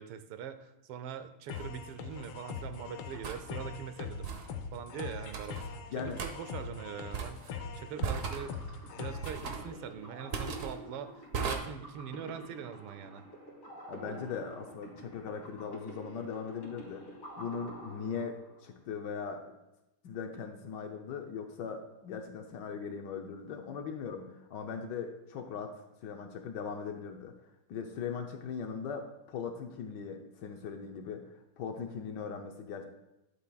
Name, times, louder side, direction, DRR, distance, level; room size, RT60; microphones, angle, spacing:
voice 1, 0.0-4.3 4.7-5.6 6.0-8.6 8.9-13.2, right 8 dB, 85° right, 10 dB, 1.5 m, -43 dB
sound 1, 1.5-9.5, left 5 dB, 90° left, 1.7 m, -42 dB
sound 2, 1.5-1.7 3.2-3.4 4.2-4.5 5.3-5.7 6.2-6.3 7.1-7.5 8.0-8.5 9.2-9.7 10.3-10.7 11.3-11.6, right 6 dB, 65° right, 0.8 m, -36 dB
sound 3, 7.9-18.8, right 1 dB, 40° left, 2.7 m, -48 dB
voice 2, 13.9-19.5 20.0-27.3 27.7-32.8, left 6 dB, 70° left, 4 dB, 1.1 m, -40 dB
11.5 x 7.4 x 2.3 m, 0.91 s
omnidirectional pair, 2.4 m